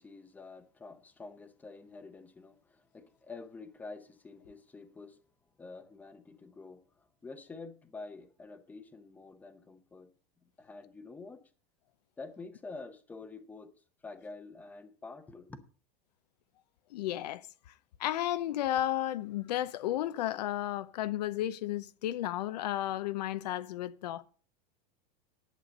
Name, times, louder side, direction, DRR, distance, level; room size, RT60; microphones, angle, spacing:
voice 1, 0.0-5.2 5.6-10.1 10.4-11.4 12.2-15.6, left 3 dB, 10° left, 0.8 m, -48 dB
voice 2, 16.9-17.5 18.0-24.2, left 13 dB, 80° left, 0.8 m, -33 dB
11.0 x 8.3 x 5.2 m
supercardioid pair, 170°, 21 cm